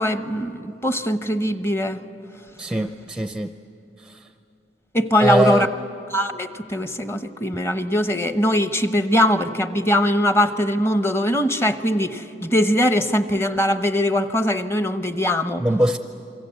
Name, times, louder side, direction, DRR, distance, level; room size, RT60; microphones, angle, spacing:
voice 1, 0.0-2.0 4.9-5.7 6.1-15.6, equal, 15° left, 10 dB, 0.8 m, -21 dB
voice 2, 2.6-3.5 5.2-5.7 15.6-16.0, right 1 dB, 5° right, 8 dB, 0.5 m, -21 dB
29.0 x 23.5 x 8.1 m, 2.7 s
head